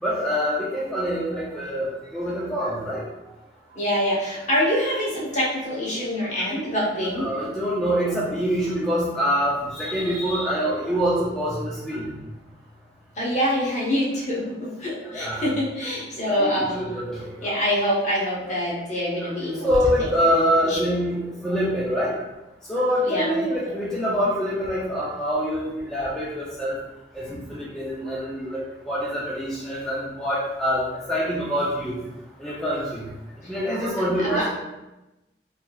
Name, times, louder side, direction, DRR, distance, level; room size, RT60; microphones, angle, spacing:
voice 1, 0.0-3.1 7.0-12.1 15.1-15.5 16.4-17.5 19.6-22.1 22.7-26.8 27.1-32.0 32.4-33.0 33.5-34.5, equal, 5° left, -8 dB, 0.4 m, -25 dB
voice 2, 3.7-7.3 13.2-16.9 17.4-19.7 20.3-20.9 23.0-23.8 33.4-33.5 34.2-34.5, equal, 45° left, -6 dB, 0.9 m, -25 dB
3.3 x 2.7 x 2.3 m, 0.98 s
head